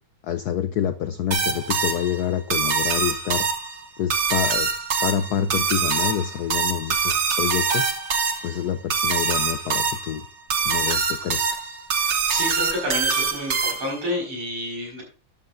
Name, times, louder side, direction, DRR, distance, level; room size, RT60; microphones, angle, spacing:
voice 1, 0.2-3.5 4.0-4.7 5.0-7.9 8.4-10.2 10.6-11.6, left 9 dB, 85° left, 12 dB, 0.8 m, -27 dB
sound 1, 1.3-14.1, right 5 dB, 45° right, 1.0 m, -24 dB
voice 2, 12.0-15.0, left 1 dB, 80° right, -2 dB, 5.7 m, -29 dB
13.0 x 10.5 x 2.6 m, 0.35 s
omnidirectional pair, 2.4 m